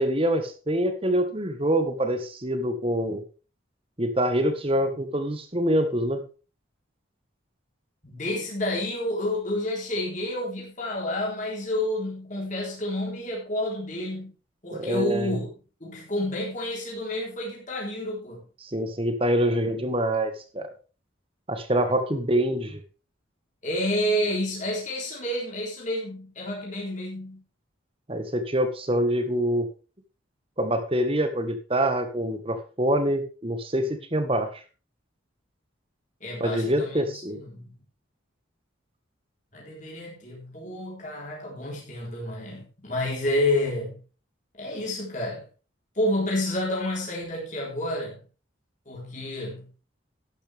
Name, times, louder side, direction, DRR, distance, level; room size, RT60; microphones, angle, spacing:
voice 1, 0.0-3.2 4.0-6.2 14.7-15.4 18.6-20.7 21.5-22.8 28.1-29.7 30.6-34.6 36.4-37.4, right 1 dB, 25° right, 9 dB, 1.5 m, -25 dB
voice 2, 8.0-14.3 14.6-15.5 15.8-18.4 21.9-22.0 23.6-27.4 36.2-37.7 39.5-44.0 44.6-45.5 45.9-48.2 48.9-49.7, left 1 dB, 40° left, -3 dB, 3.9 m, -29 dB
12.0 x 10.0 x 3.4 m, 0.34 s
head